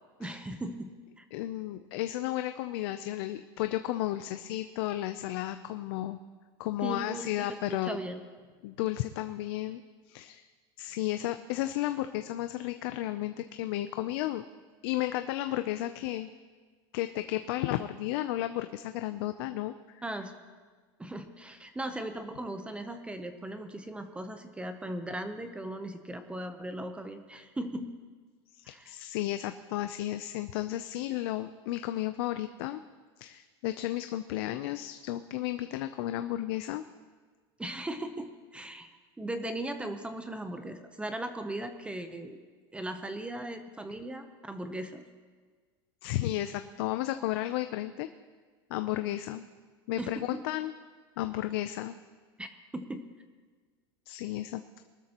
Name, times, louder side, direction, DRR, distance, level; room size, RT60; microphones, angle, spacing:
voice 1, 0.2-0.9 1.2-1.3 6.8-8.2 20.0-20.3 21.0-27.9 28.6-28.9 37.6-38.9 39.2-42.4 42.7-45.0 50.0-50.4 52.4-52.5 52.7-53.0, right 1 dB, 10° right, 8 dB, 0.8 m, -38 dB
voice 2, 1.3-6.2 6.6-8.0 8.6-9.8 10.1-10.4 10.8-14.4 14.8-16.3 16.9-20.0 28.6-32.8 33.2-36.8 46.0-48.1 48.7-49.4 49.9-50.7 51.2-52.0 54.1-54.6, left 14 dB, 70° left, 9 dB, 0.6 m, -33 dB
22.5 x 13.0 x 3.0 m, 1.5 s
supercardioid pair, 130°, 13 cm